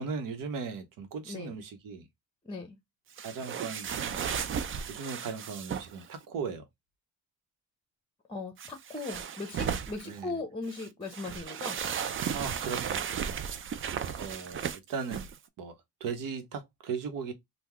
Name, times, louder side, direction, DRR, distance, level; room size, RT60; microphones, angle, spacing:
voice 1, 0.0-2.1 3.2-4.2 4.5-6.6 10.0-10.4 12.3-13.1 13.6-13.8 14.2-15.3 15.6-17.3, right 5 dB, 70° right, 1.0 m, -38 dB
voice 2, 1.2-1.6 2.4-2.8 8.3-11.8, left 3 dB, 15° left, 0.9 m, -38 dB
sound 1, 3.2-6.1 8.6-10.2 10.7-15.4, right 7 dB, 40° right, 0.5 m, -35 dB
3.6 x 2.3 x 3.0 m
cardioid pair, 100°, 34 cm